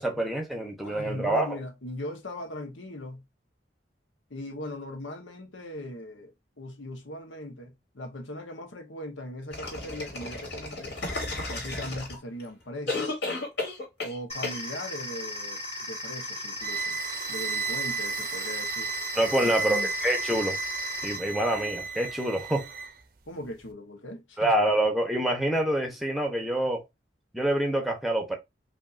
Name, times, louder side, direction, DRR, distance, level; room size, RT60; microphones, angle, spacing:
voice 1, 0.0-1.6 19.1-20.6 21.0-22.7 24.4-26.8 27.3-28.4, right 1 dB, ahead, 0.9 m, -26 dB
voice 2, 0.8-3.2 4.3-11.0 11.3-13.2 14.0-17.0 17.3-19.9 23.3-24.5, left 1 dB, 85° left, 1.1 m, -39 dB
sound 1, 9.5-12.4 12.9-14.2 14.4-14.6, left 2 dB, 60° left, 2.4 m, -33 dB
sound 2, 14.3-21.2, left 1 dB, 35° left, 2.1 m, -37 dB
sound 3, 16.6-22.9, right 4 dB, 50° right, 0.6 m, -33 dB
5.2 x 2.7 x 2.5 m
head